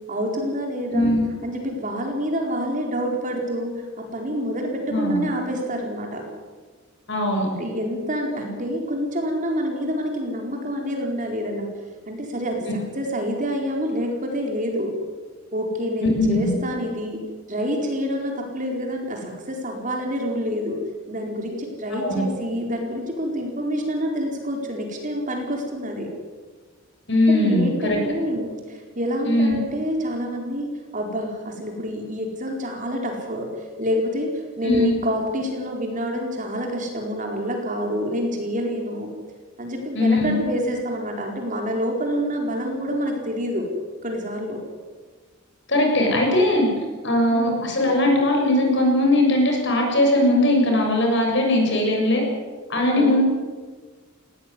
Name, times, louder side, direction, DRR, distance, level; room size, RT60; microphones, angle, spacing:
voice 1, 0.1-1.1 1.4-3.7 4.1-6.2 7.6-11.7 12.1-12.6 13.0-14.9 15.5-17.2 17.5-20.8 21.1-26.1 27.3-33.5 33.8-34.3 34.6-39.1 39.6-43.7 44.0-44.6 47.3-47.7 52.9-53.2, equal, 40° right, 1 dB, 4.5 m, -27 dB
voice 2, 0.9-1.2 4.9-5.2 7.1-7.5 16.0-16.5 21.9-22.3 27.1-28.0 29.2-29.6 34.6-34.9 39.9-40.3 45.7-46.7 47.0-52.2 52.7-53.2, left 1 dB, 60° left, 1 dB, 6.8 m, -20 dB
19.0 x 18.0 x 9.7 m, 1.4 s
head